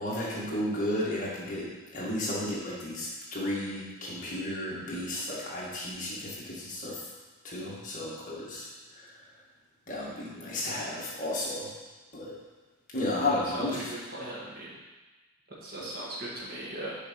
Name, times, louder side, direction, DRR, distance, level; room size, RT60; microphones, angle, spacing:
voice 1, 0.0-1.7 1.9-7.1 7.4-9.1 9.9-11.7 12.1-12.4 12.9-13.9, left 1 dB, 35° left, -7 dB, 2.1 m, -33 dB
voice 2, 13.2-14.8 15.6-17.0, right 1 dB, 45° right, -5 dB, 1.8 m, -38 dB
6.8 x 5.1 x 6.4 m, 1.2 s
head